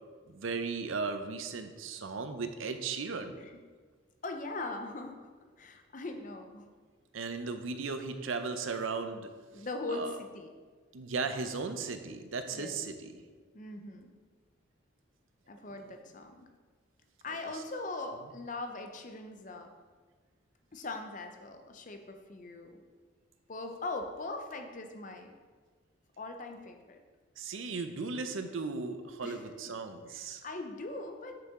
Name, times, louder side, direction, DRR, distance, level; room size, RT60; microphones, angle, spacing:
voice 1, 0.3-3.4 7.1-9.3 9.6-10.2 10.9-13.1 15.8-15.9 27.4-30.4, right 4 dB, 80° right, 8 dB, 0.6 m, -36 dB
voice 2, 4.2-5.3 5.6-6.7 9.5-10.5 12.5-12.8 13.5-14.2 15.5-16.5 17.2-19.7 20.7-22.8 23.5-25.4 26.2-27.0 29.2-29.4 30.1-31.4, left 2 dB, 40° left, 5 dB, 0.6 m, -40 dB
6.8 x 6.6 x 3.7 m, 1.5 s
head